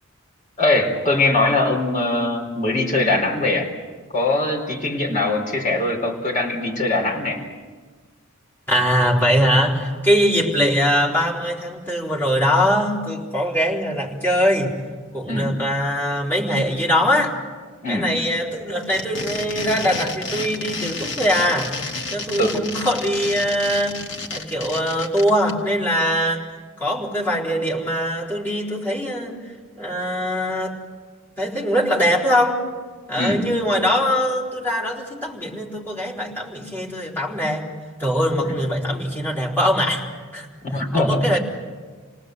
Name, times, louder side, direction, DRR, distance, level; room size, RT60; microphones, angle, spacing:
voice 1, 0.6-3.7 4.1-7.4 15.3-15.5 17.8-18.1 22.4-22.6 33.2-33.5 38.4-38.5 40.6-41.4, left 2 dB, 40° left, -1 dB, 4.6 m, -21 dB
voice 2, 8.7-14.8 15.1-17.4 17.9-21.7 22.1-24.0 24.3-26.5 26.8-29.4 29.8-30.8 31.4-32.6 33.1-37.7 38.0-40.1 40.3-40.5 40.7-41.4, equal, 10° left, -5 dB, 4.3 m, -22 dB
sound 1, 18.8-25.5, left 3 dB, 60° left, 2.2 m, -31 dB
29.5 x 19.0 x 8.0 m, 1.4 s
head